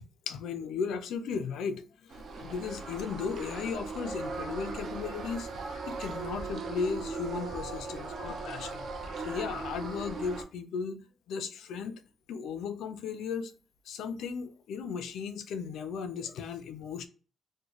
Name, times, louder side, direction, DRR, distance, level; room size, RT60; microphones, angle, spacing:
voice 1, 0.3-1.8 2.4-5.5 5.9-8.9 9.2-11.0 11.3-12.0 12.3-13.5 13.9-17.1, left 6 dB, 85° left, 0.4 m, -36 dB
sound 1, 2.1-10.4, right 4 dB, 55° right, 0.6 m, -38 dB
3.0 x 2.1 x 3.8 m
cardioid pair, 125°, 0 cm